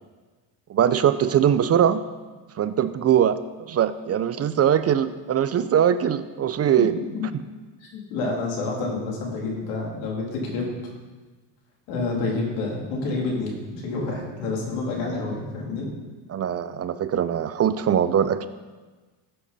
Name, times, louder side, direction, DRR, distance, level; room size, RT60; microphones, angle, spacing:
voice 1, 0.7-2.1 2.6-3.4 3.7-7.0 16.3-18.5, right 9 dB, 35° right, 12 dB, 0.5 m, -21 dB
voice 2, 7.8-10.7 11.9-15.9, left 3 dB, 85° left, -2 dB, 3.3 m, -28 dB
14.5 x 7.7 x 4.1 m, 1.3 s
supercardioid pair, 100°, 48 cm